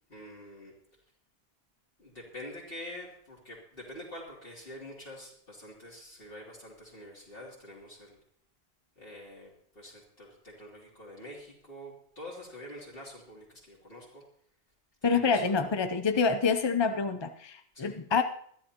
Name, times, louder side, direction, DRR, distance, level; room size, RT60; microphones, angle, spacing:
voice 1, 0.1-0.7 2.0-8.2 9.0-14.2 15.0-15.7 17.7-17.9, left 1 dB, 65° left, -6 dB, 3.1 m, -46 dB
voice 2, 15.0-18.2, left 5 dB, 30° left, 8 dB, 0.6 m, -27 dB
21.0 x 12.5 x 2.9 m, 0.63 s
omnidirectional pair, 1.0 m